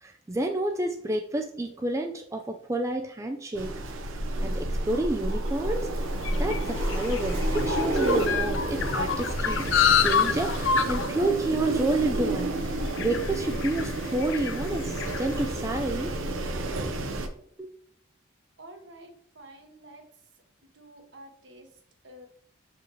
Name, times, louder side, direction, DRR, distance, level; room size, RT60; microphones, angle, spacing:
voice 1, 0.0-3.8 4.4-5.9 6.4-12.5 13.0-16.1 17.6-17.7, right 2 dB, 15° right, 4 dB, 0.3 m, -30 dB
Wind, 3.5-17.3, right 1 dB, 80° right, 0.8 m, -30 dB
sound 1, 5.5-16.1, left 7 dB, 65° left, 0.4 m, -29 dB
voice 2, 18.6-20.0 20.7-22.3, right 1 dB, 65° right, 3 dB, 1.3 m, -49 dB
6.7 x 4.8 x 3.0 m, 0.62 s
head